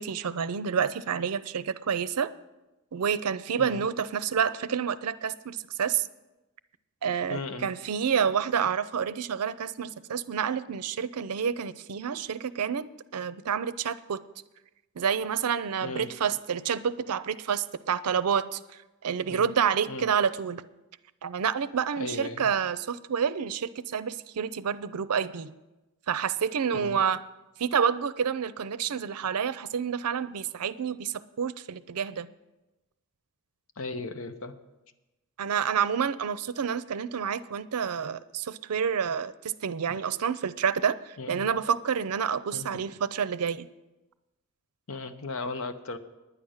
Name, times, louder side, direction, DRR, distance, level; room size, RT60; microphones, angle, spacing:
voice 1, 0.0-2.3 2.9-6.1 7.0-14.2 15.0-18.6 19.0-20.6 21.2-25.5 26.1-27.2 27.6-32.3 35.4-43.7, right 7 dB, 90° right, 16 dB, 0.5 m, -29 dB
voice 2, 7.3-7.7 15.8-16.1 19.3-19.5 19.9-20.1 22.0-22.5 26.7-27.0 33.8-34.6 39.9-40.0 41.2-41.5 42.5-42.9 44.9-46.0, left 3 dB, 65° left, 9 dB, 0.8 m, -36 dB
10.0 x 10.0 x 6.4 m, 1.0 s
head